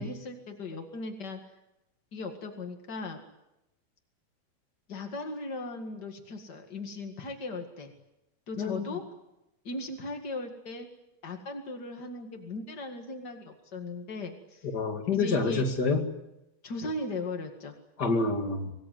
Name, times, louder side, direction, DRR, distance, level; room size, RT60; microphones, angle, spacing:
voice 1, 0.0-1.4 2.1-3.2 4.9-7.9 8.5-9.0 9.6-10.9 11.2-14.7 15.1-15.7 16.6-17.7, left 2 dB, 80° left, 4 dB, 0.9 m, -38 dB
voice 2, 8.6-8.9 14.7-16.0 18.0-18.7, left 3 dB, 40° left, 3 dB, 1.5 m, -27 dB
26.0 x 20.0 x 9.4 m, 0.90 s
omnidirectional pair, 5.6 m